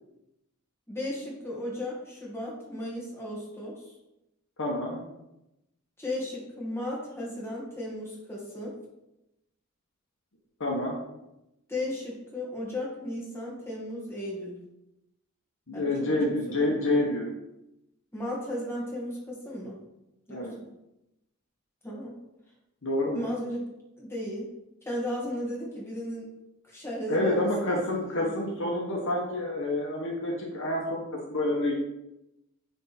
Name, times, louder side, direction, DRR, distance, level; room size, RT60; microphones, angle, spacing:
voice 1, 0.9-3.9 6.0-8.8 11.7-14.5 15.7-16.6 18.1-19.8 20.3-20.5 21.8-22.1 23.1-23.6 24.0-24.5 24.8-26.3 26.6-28.3, left 1 dB, 10° left, -5 dB, 2.2 m, -35 dB
voice 2, 4.6-5.0 10.6-11.0 15.7-17.3 20.3-20.5 22.8-23.2 27.1-31.7, left 1 dB, 60° left, -1 dB, 1.3 m, -28 dB
9.5 x 3.6 x 4.4 m, 0.90 s
head